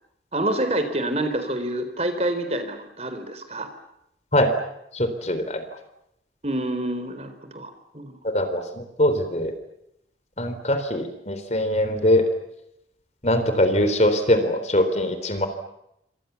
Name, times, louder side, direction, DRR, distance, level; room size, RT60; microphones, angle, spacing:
voice 1, 0.3-3.7 6.4-8.2, right 1 dB, 35° right, 8 dB, 4.1 m, -27 dB
voice 2, 4.9-5.6 8.2-9.5 10.4-12.3 13.2-15.5, left 1 dB, 40° left, 9 dB, 3.7 m, -22 dB
29.0 x 26.0 x 7.2 m, 0.81 s
head